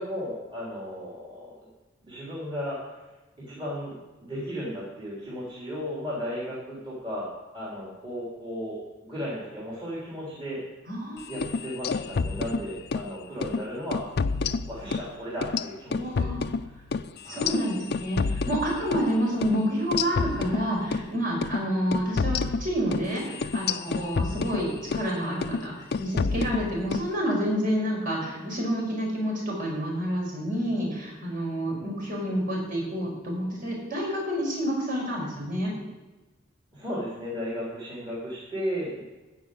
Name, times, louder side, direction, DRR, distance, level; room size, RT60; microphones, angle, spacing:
voice 1, 0.0-1.5 2.0-3.1 3.5-3.9 4.2-7.3 7.5-10.6 11.3-14.0 14.7-16.3 17.2-17.6 36.7-39.0, equal, 25° right, -8 dB, 3.3 m, -35 dB
voice 2, 10.9-11.4 15.9-16.5 17.3-35.7, equal, 45° right, -3 dB, 5.4 m, -29 dB
sound 1, 11.3-13.1 13.4-13.6 13.9-15.1 15.4-19.1 19.4-19.6 19.9-21.1 21.4-21.6 21.9-25.1 25.4-25.7 25.9-27.1, left 4 dB, 55° left, 0.5 m, -29 dB
15.5 x 5.2 x 8.3 m, 1.1 s
head